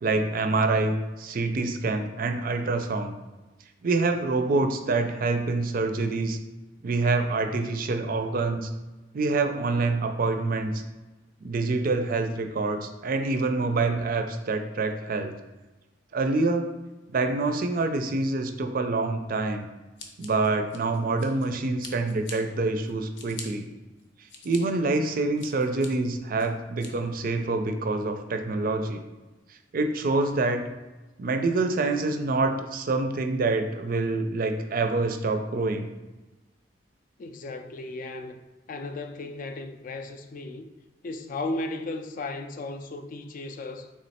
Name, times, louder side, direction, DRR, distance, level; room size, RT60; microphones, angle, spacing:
voice 1, 0.0-3.1 3.8-6.4 6.8-8.7 9.1-10.7 11.4-15.3 16.1-16.7 17.1-19.7 20.2-23.7 24.4-29.0 29.7-30.7 31.2-35.9, right 3 dB, 50° right, 0.4 m, -26 dB
Scissors, 20.0-21.5 21.8-22.4 22.8-23.5 24.0-24.6 25.0-25.9 26.4-26.9, left 4 dB, 75° left, 0.7 m, -43 dB
voice 2, 37.2-38.4 38.7-40.7 41.0-43.9, left 2 dB, 45° left, 0.3 m, -35 dB
3.6 x 3.1 x 4.2 m
head